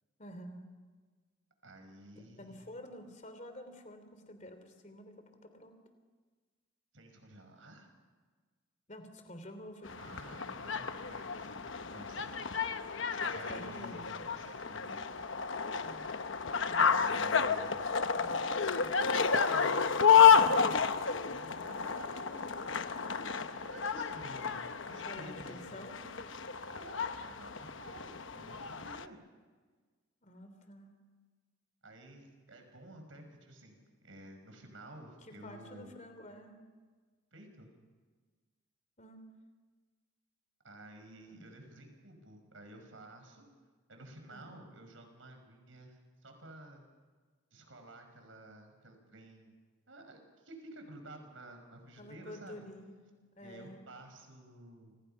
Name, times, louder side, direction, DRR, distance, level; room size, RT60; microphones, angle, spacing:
voice 1, 0.2-0.7 2.4-5.8 8.9-10.6 13.5-14.1 15.8-16.1 16.7-16.8 18.1-18.4 18.8-19.0 25.0-26.1 30.2-30.9 35.2-36.6 39.0-39.3 41.3-41.5 44.3-44.6 52.0-53.0 53.3-53.8, equal, 35° left, 7 dB, 3.2 m, -49 dB
voice 2, 1.6-2.6 6.9-7.9 10.0-11.7 11.9-12.3 13.2-15.1 16.8-17.9 19.4-22.6 23.0-25.7 26.7-29.2 31.8-36.0 37.3-37.7 40.6-43.5 43.9-46.8 47.5-49.6 49.9-52.7 53.4-55.0, right 1 dB, 70° right, 4 dB, 5.7 m, -52 dB
sound 1, 9.8-29.0, left 6 dB, 70° left, 1.0 m, -30 dB
29.5 x 26.5 x 5.7 m, 1.4 s
head